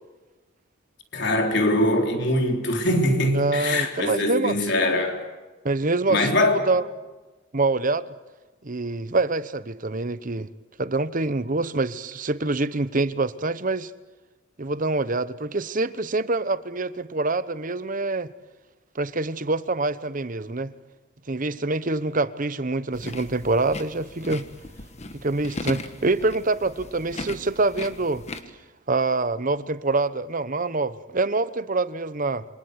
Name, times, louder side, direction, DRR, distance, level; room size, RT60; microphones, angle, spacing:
voice 1, 1.1-5.2 6.1-6.6, left 1 dB, 60° left, 3.8 m, -22 dB
voice 2, 3.3-4.8 5.6-6.9 7.5-8.0 8.6-10.5 10.8-13.9 14.6-18.3 18.9-20.7 21.3-24.5 25.2-28.2 28.9-32.4, right 3 dB, 40° right, 0.9 m, -25 dB
sound 1, 22.9-28.4, left 2 dB, 35° left, 1.5 m, -38 dB
27.5 x 25.5 x 8.1 m
head